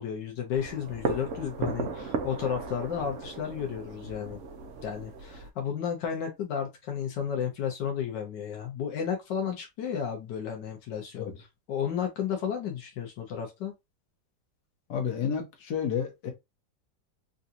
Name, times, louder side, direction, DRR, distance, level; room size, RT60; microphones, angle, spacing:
voice 1, 0.0-4.4 4.8-11.3 11.7-13.7, left 8 dB, 85° left, 1.5 m, -33 dB
sound 1, 0.5-5.5, right 4 dB, 60° right, 0.8 m, -36 dB
voice 2, 14.9-16.3, left 7 dB, 70° left, 1.5 m, -30 dB
3.8 x 2.4 x 2.7 m
omnidirectional pair, 1.9 m